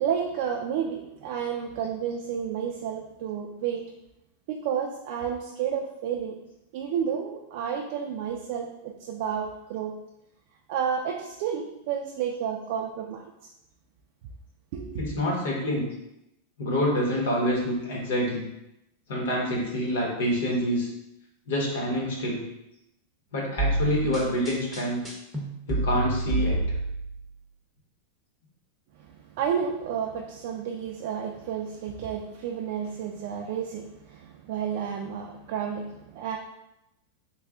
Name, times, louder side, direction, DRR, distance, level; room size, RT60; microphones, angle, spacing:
voice 1, 0.0-3.8 4.5-6.4 6.7-10.0 10.7-13.3 14.7-15.0 29.0-36.4, right 8 dB, 50° right, 0 dB, 0.3 m, -31 dB
voice 2, 15.0-15.9 16.6-18.4 19.1-20.9 21.5-22.4 23.3-25.0 25.7-26.6, equal, 85° left, -2 dB, 1.2 m, -27 dB
sound 1, 23.6-27.3, right 2 dB, 5° right, 0.7 m, -28 dB
3.2 x 2.3 x 3.7 m, 0.86 s
supercardioid pair, 155°, 0 cm